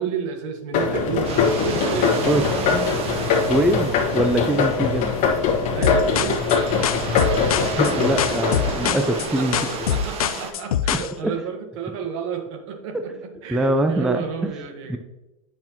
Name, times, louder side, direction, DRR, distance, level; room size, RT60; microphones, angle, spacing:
voice 1, 0.0-2.8 5.7-6.4 8.8-9.0 9.4-15.0, right 6 dB, 60° right, 5 dB, 1.3 m, -31 dB
sound 1, 0.7-9.8, left 5 dB, 45° left, 1.5 m, -22 dB
sound 2, 1.2-10.5, right 4 dB, 35° right, 1.1 m, -31 dB
voice 2, 3.5-5.1 7.7-9.6 10.9-11.3 13.5-14.2 14.9-15.0, right 1 dB, 5° right, 6 dB, 0.4 m, -23 dB
sound 3, 5.8-11.1, left 10 dB, 90° left, 0.4 m, -24 dB
8.5 x 6.1 x 2.9 m, 1.1 s
hypercardioid pair, 115°, 18 cm